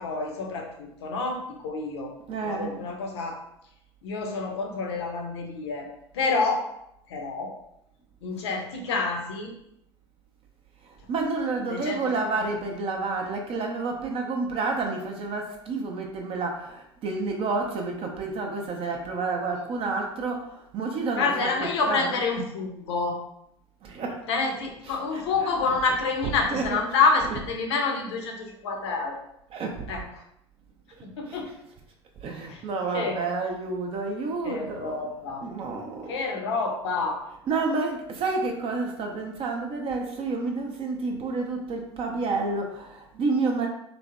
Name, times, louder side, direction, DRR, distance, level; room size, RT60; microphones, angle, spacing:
voice 1, 0.0-2.1 2.4-3.4 4.0-6.7 7.1-7.6 8.2-9.5 11.7-12.0 12.4-12.5 21.1-23.2 24.3-29.2 29.9-30.1 31.0-31.5 32.5-32.6 32.9-33.2 34.4-35.4 36.1-37.2, left 4 dB, 70° left, 2 dB, 0.5 m, -28 dB
voice 2, 2.3-2.8 10.8-22.1 23.8-24.2 24.8-25.7 26.2-26.8 27.2-27.5 29.5-29.9 31.3-31.4 32.2-36.1 37.4-43.7, right 3 dB, 40° right, 2 dB, 0.5 m, -30 dB
3.2 x 2.0 x 2.4 m, 0.77 s
figure-of-eight pair, 65°, 15 cm